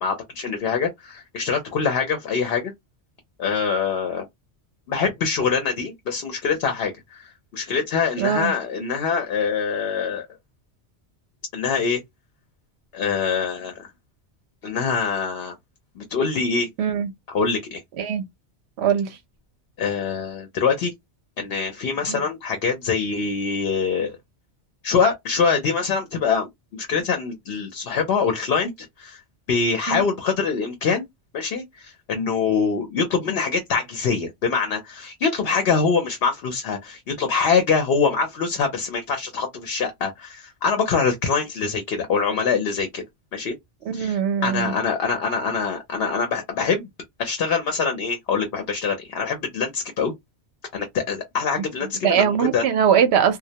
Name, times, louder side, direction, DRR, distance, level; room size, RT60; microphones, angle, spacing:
voice 1, 0.0-2.7 3.4-4.2 4.9-10.3 11.5-12.0 12.9-13.9 14.6-15.5 16.0-16.7 17.3-17.8 19.8-20.9 21.4-24.2 24.8-29.2 29.5-31.1 31.3-43.0 43.3-43.6 43.9-46.9 47.2-50.1 50.7-52.6, left 5 dB, 65° left, 0.8 m, -24 dB
voice 2, 8.2-8.5 16.8-17.1 18.0-18.2 18.8-19.2 22.1-22.2 29.9-30.0 43.9-44.7 52.0-53.4, right 8 dB, 70° right, 0.8 m, -21 dB
2.2 x 2.1 x 2.7 m
omnidirectional pair, 1.2 m